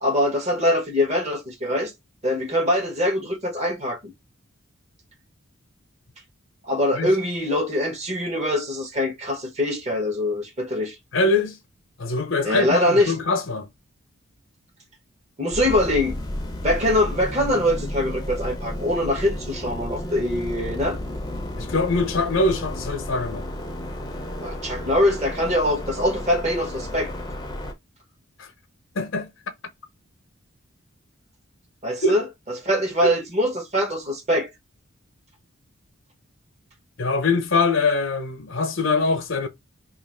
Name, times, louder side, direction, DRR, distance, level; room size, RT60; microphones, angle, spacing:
voice 1, 0.0-1.9 2.2-4.1 6.7-11.0 12.4-13.2 15.4-16.2 16.6-21.0 24.4-27.1 31.8-32.2 32.6-34.5, left 1 dB, 30° right, 0.9 m, -23 dB
voice 2, 11.1-11.6 12.0-13.7 21.6-23.5 28.4-28.5 28.9-29.3 32.0-32.1 33.0-33.1 37.0-39.5, left 3 dB, 65° left, 0.7 m, -23 dB
sound 1, 15.5-27.7, left 1 dB, 20° left, 0.6 m, -32 dB
2.9 x 2.5 x 4.3 m
head